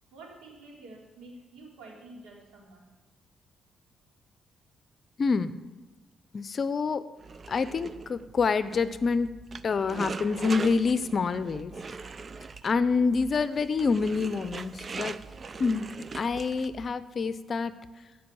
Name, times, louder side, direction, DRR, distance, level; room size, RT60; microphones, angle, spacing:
voice 1, 0.1-2.8, right 2 dB, 85° right, -3 dB, 3.9 m, -48 dB
voice 2, 5.2-5.5 6.3-7.0 7.5-9.3 9.6-11.7 12.6-15.2 15.6-15.9 16.1-17.7, left 4 dB, 45° left, 13 dB, 0.7 m, -27 dB
sound 1, 7.2-16.9, right 4 dB, 35° right, 0.5 m, -41 dB
15.5 x 5.4 x 7.1 m, 1.3 s
cardioid pair, 90°, 0 cm